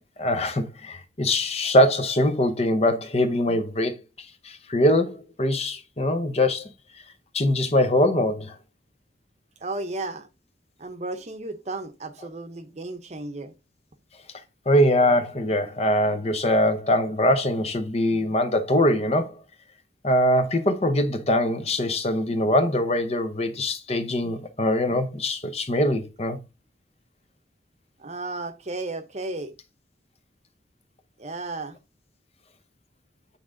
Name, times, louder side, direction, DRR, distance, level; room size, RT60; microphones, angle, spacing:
voice 1, 0.2-3.9 4.4-6.7 7.3-8.5 14.7-19.3 20.0-26.4, left 1 dB, 35° left, 0.8 m, -22 dB
voice 2, 9.6-10.3 10.8-13.5 28.0-29.5 31.2-31.8, right 2 dB, 40° right, 0.8 m, -34 dB
8.5 x 3.6 x 3.7 m
head